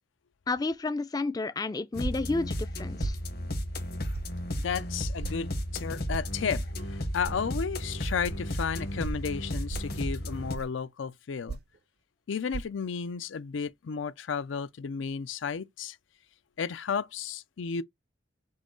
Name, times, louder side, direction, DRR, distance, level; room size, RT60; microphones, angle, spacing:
voice 1, 0.5-3.2, left 3 dB, 20° left, 0.3 m, -31 dB
sound 1, 1.9-10.5, equal, 55° left, 1.1 m, -34 dB
sound 2, 2.0-2.3 3.0-3.2 4.1-4.3 5.2-5.4 6.1-6.3 7.3-7.4 8.2-8.4 9.0-9.2 9.7-10.0 10.5-10.8 11.5-11.8 12.5-12.6, right 4 dB, 55° right, 0.4 m, -37 dB
voice 2, 4.6-11.6 12.3-16.0 16.6-17.8, left 6 dB, 85° left, 0.5 m, -33 dB
5.6 x 2.3 x 3.7 m
head